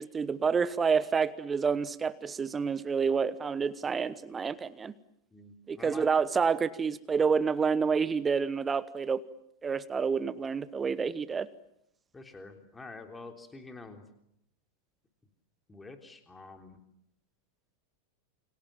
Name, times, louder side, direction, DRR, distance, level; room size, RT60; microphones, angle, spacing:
voice 1, 0.0-4.9 5.7-9.2 9.6-11.5, right 5 dB, 15° right, 17 dB, 1.1 m, -28 dB
voice 2, 5.3-6.1 12.1-14.0 15.7-16.8, left 3 dB, 10° left, 5 dB, 3.5 m, -47 dB
29.0 x 26.0 x 7.6 m, 0.77 s
figure-of-eight pair, 90°, 0 cm